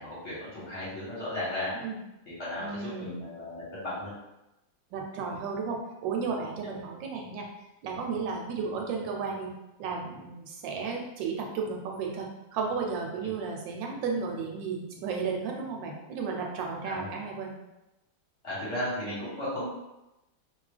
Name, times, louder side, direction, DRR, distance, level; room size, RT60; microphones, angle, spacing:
voice 1, 0.0-1.7 2.3-4.1 6.6-6.7 13.2-13.3 16.8-17.1 18.4-19.7, left 1 dB, 45° left, -9 dB, 1.2 m, -35 dB
voice 2, 2.6-3.2 4.9-7.5 7.8-9.5 9.8-17.5, right 5 dB, 80° right, 1 dB, 1.2 m, -33 dB
2.9 x 2.3 x 3.2 m, 0.94 s
omnidirectional pair, 2.0 m